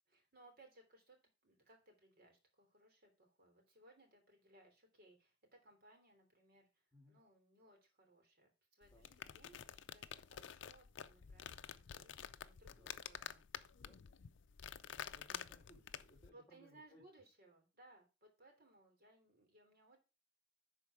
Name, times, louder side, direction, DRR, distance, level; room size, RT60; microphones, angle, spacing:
voice 1, 0.1-13.5 16.3-20.0, right 2 dB, 55° right, 3 dB, 3.2 m, -66 dB
sound 1, 8.8-16.3, left 8 dB, 65° left, 0.5 m, -50 dB
voice 2, 15.1-17.0, left 1 dB, 15° left, -3 dB, 2.1 m, -66 dB
11.0 x 4.4 x 4.7 m, 0.30 s
head